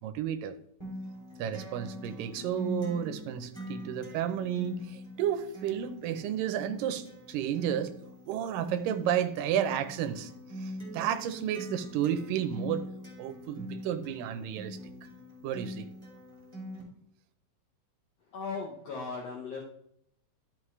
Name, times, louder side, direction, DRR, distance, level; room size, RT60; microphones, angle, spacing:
voice 1, 0.0-0.5 1.4-8.0 8.3-10.3 10.6-12.9 13.2-14.8 15.4-15.9, right 10 dB, 85° right, 9 dB, 2.3 m, -32 dB
Acoustic guitar, 0.8-16.8, equal, 10° right, 2.4 m, -43 dB
voice 2, 18.3-19.6, left 4 dB, 60° left, -2 dB, 1.9 m, -37 dB
13.0 x 5.3 x 3.2 m, 0.71 s
omnidirectional pair, 4.0 m